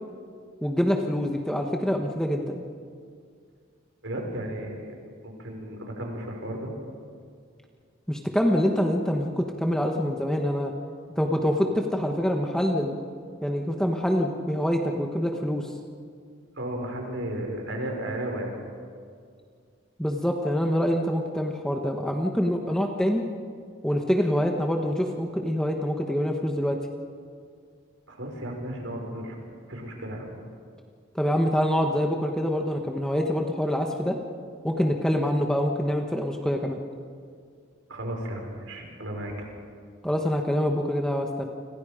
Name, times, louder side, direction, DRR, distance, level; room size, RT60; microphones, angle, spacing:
voice 1, 0.6-2.6 8.1-10.7 11.2-13.0 13.4-15.7 20.0-23.2 23.8-26.8 31.1-34.2 34.6-36.8 40.0-41.5, equal, 5° left, 2 dB, 1.4 m, -25 dB
voice 2, 4.0-4.9 5.2-6.7 16.6-18.6 28.1-29.4 29.7-30.3 37.9-39.5, right 1 dB, 70° right, 1 dB, 5.5 m, -34 dB
29.5 x 26.5 x 5.2 m, 2.2 s
head